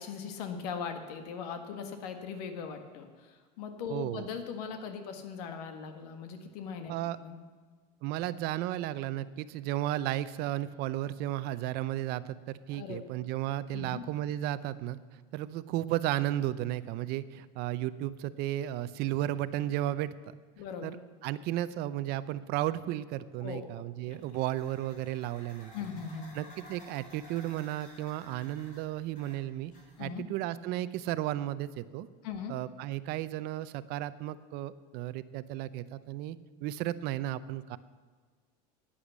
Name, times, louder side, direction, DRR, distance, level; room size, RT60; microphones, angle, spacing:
voice 1, 0.0-6.9 7.2-7.4 12.7-13.0 13.7-14.0 20.6-21.0 23.4-24.2 25.7-26.3 30.0-30.3 32.2-32.5, left 6 dB, 85° left, 7 dB, 1.7 m, -40 dB
voice 2, 3.9-4.3 6.9-7.2 8.0-15.0 15.3-20.1 20.8-21.0 21.2-25.7 26.3-29.7 30.0-32.1 32.5-37.8, right 14 dB, 55° right, 15 dB, 0.6 m, -34 dB
sound 1, 24.1-30.3, left 1 dB, 40° left, 3.7 m, -54 dB
11.5 x 9.9 x 7.3 m, 1.5 s
cardioid pair, 145°, 20 cm